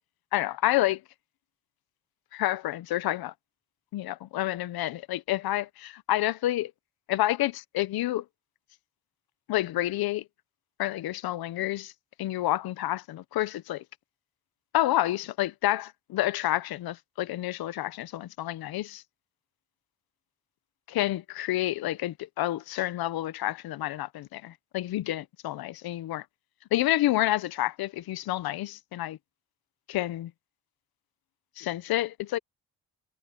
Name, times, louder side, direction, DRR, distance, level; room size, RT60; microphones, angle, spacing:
voice 1, 0.3-1.0 2.3-3.3 3.9-6.7 7.1-8.2 9.5-10.2 10.8-11.9 12.2-13.8 14.7-19.0 20.9-26.2 26.7-29.2 29.9-30.3 31.6-32.4, left 15 dB, 90° left, 0.8 m, -29 dB
cardioid pair, 110°, 36 cm